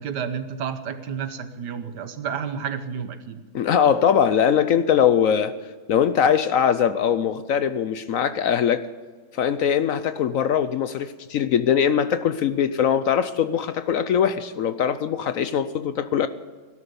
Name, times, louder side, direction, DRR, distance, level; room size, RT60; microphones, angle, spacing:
voice 1, 0.0-3.4, right 7 dB, 80° right, 11 dB, 1.6 m, -31 dB
voice 2, 3.5-5.5 5.9-8.9 9.3-16.3, left 8 dB, 65° left, 12 dB, 0.9 m, -21 dB
17.5 x 12.0 x 6.9 m, 1.4 s
omnidirectional pair, 1.8 m